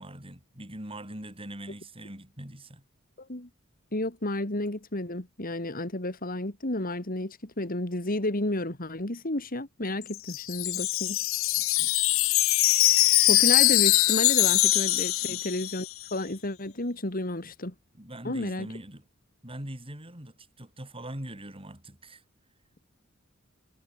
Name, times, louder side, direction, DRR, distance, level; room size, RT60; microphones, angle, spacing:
voice 1, 0.0-2.8 11.8-11.9 15.2-15.4 17.4-17.5 17.9-19.0 19.4-22.2, right 1 dB, 30° right, 6.1 m, -42 dB
voice 2, 3.2-3.5 3.9-11.2 13.3-17.7 18.2-18.7, left 1 dB, 45° left, 3.1 m, -31 dB
Wind chime, 10.0-16.0, left 17 dB, 80° left, 0.7 m, -23 dB
head